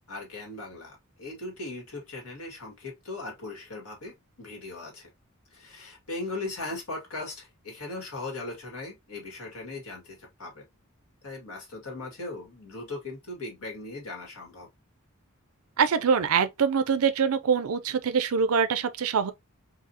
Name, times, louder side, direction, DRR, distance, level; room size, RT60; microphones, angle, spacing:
voice 1, 0.0-5.1 5.5-10.6 11.2-14.7, left 2 dB, 85° left, 2.1 m, -39 dB
voice 2, 15.8-19.3, right 6 dB, 80° right, 0.5 m, -24 dB
4.8 x 2.7 x 2.8 m
head